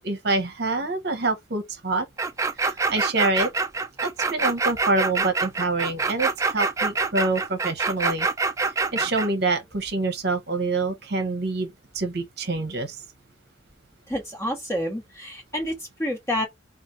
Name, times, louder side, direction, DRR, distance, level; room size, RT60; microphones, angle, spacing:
voice 1, 0.0-2.0 2.6-3.5 4.0-8.3 8.9-13.0, right 3 dB, 55° right, 0.9 m, -26 dB
sound 1, 2.2-9.3, right 4 dB, 15° right, 0.4 m, -25 dB
voice 2, 14.1-16.5, equal, 15° left, 1.4 m, -29 dB
4.3 x 2.5 x 4.4 m
head